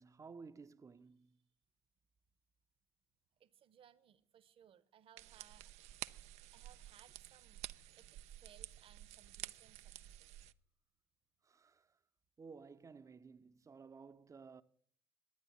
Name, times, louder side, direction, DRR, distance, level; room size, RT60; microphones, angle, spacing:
voice 1, 0.0-1.4 11.4-11.9 12.4-14.6, right 5 dB, 25° right, 0.7 m, -55 dB
voice 2, 3.4-5.7 6.5-10.3, right 9 dB, 50° right, 1.0 m, -65 dB
sound 1, 5.2-10.5, right 14 dB, 65° right, 0.5 m, -51 dB
11.5 x 9.3 x 9.7 m
hypercardioid pair, 65°, 12 cm